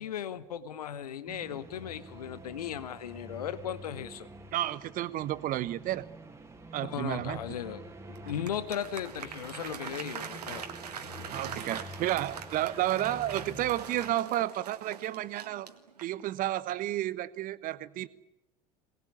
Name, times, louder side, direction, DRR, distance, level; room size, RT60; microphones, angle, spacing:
voice 1, 0.0-4.3 6.8-7.8 8.2-10.7, left 9 dB, 70° left, 14 dB, 1.1 m, -37 dB
sound 1, 1.3-14.1, right 1 dB, 15° right, 2.5 m, -47 dB
voice 2, 4.5-6.1 6.7-7.4 8.2-8.3 11.3-15.7 16.0-18.1, right 14 dB, 45° right, 16 dB, 1.2 m, -31 dB
Applause, 8.1-16.3, right 7 dB, 75° right, 1.9 m, -43 dB
23.5 x 20.0 x 9.8 m, 0.88 s
figure-of-eight pair, 65°, 20 cm